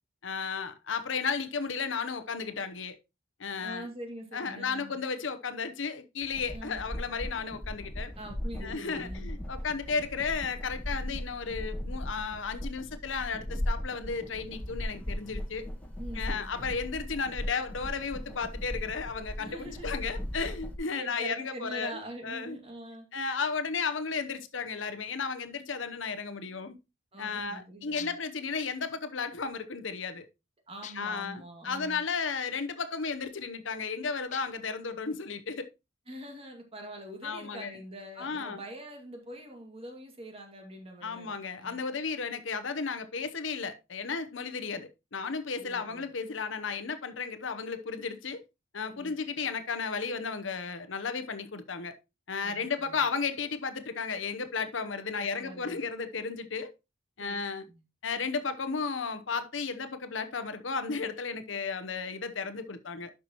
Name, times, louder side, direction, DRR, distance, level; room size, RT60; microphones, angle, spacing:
voice 1, 0.2-3.0 3.4-3.9 4.3-8.1 8.6-15.7 16.1-22.6 23.1-26.8 27.2-30.3 31.0-35.7 37.2-37.7 38.2-38.6 41.0-48.4 48.7-51.9 52.3-56.7 57.2-57.6 58.0-63.1, left 5 dB, 75° left, 0.9 m, -34 dB
voice 2, 3.6-5.0 6.5-6.8 8.2-9.3 16.0-16.7 19.4-20.0 20.9-23.1 27.1-28.2 30.7-32.0 36.1-41.8 45.6-46.1 48.9-49.2 52.4-53.0 55.1-55.8 57.2-57.4 57.7-57.8, right 1 dB, 30° right, 2.2 m, -44 dB
sound 1, 6.2-20.8, equal, 5° left, 1.6 m, -38 dB
sound 2, 28.0-28.4 30.8-31.3 34.3-34.8, left 11 dB, 40° left, 0.3 m, -45 dB
11.5 x 5.9 x 3.0 m
head